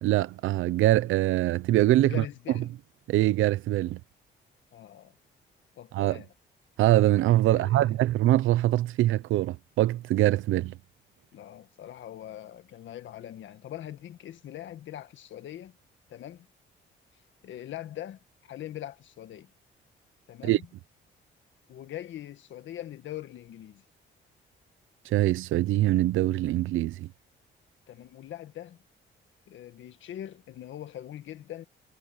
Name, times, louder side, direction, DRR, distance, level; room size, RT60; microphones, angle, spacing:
voice 1, 0.0-2.2 3.1-4.0 5.9-6.2 6.8-10.7 20.4-20.6 25.1-27.1, right 15 dB, 85° right, 0.8 m, -23 dB
voice 2, 2.1-2.7 4.7-5.1 5.8-6.3 7.5-8.0 11.3-15.8 16.1-16.5 17.4-19.5 20.3-20.7 21.7-23.8 27.9-28.8 29.5-31.6, left 12 dB, 70° left, 1.8 m, -42 dB
cardioid pair, 90°, 20 cm